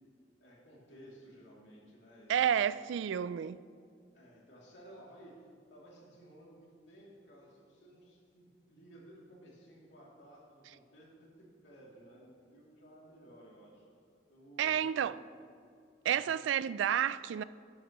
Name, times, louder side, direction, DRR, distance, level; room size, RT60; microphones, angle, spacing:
voice 1, 0.4-2.8 4.1-5.4 5.7-11.1 11.6-15.1 16.1-16.3, right 1 dB, 85° left, 2.7 m, -56 dB
voice 2, 2.3-3.6 14.6-15.2 16.0-17.4, right 9 dB, 90° right, 0.3 m, -30 dB
11.5 x 11.0 x 3.0 m
head